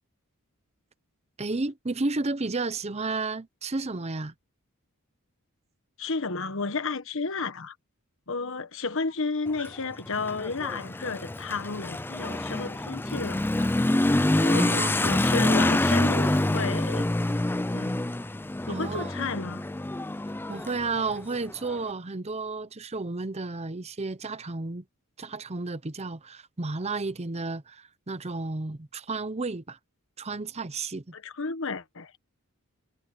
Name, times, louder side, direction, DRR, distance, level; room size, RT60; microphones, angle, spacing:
voice 1, 1.4-4.3 14.5-15.0 18.7-19.3 20.5-24.8 25.2-29.8 30.2-31.1, right 3 dB, 30° right, 0.8 m, -32 dB
voice 2, 6.0-7.7 8.3-13.7 14.4-17.0 17.7-17.9 18.7-19.6 31.1-32.1, left 4 dB, 60° left, 1.3 m, -32 dB
Motorcycle / Accelerating revving vroom, 9.5-21.8, left 1 dB, 10° left, 0.4 m, -26 dB
head